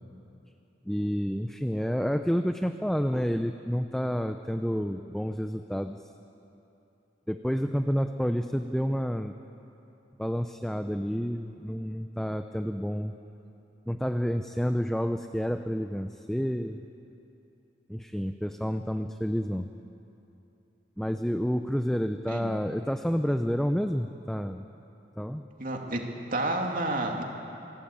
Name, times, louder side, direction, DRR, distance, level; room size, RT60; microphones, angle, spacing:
voice 1, 0.9-6.0 7.3-9.3 10.2-13.1 13.9-16.8 17.9-19.7 21.0-24.6 25.2-25.5, equal, 5° left, 7 dB, 0.6 m, -29 dB
voice 2, 25.6-26.0 26.3-27.2, right 2 dB, 50° right, 1 dB, 2.7 m, -30 dB
27.5 x 18.0 x 8.7 m, 2.9 s
head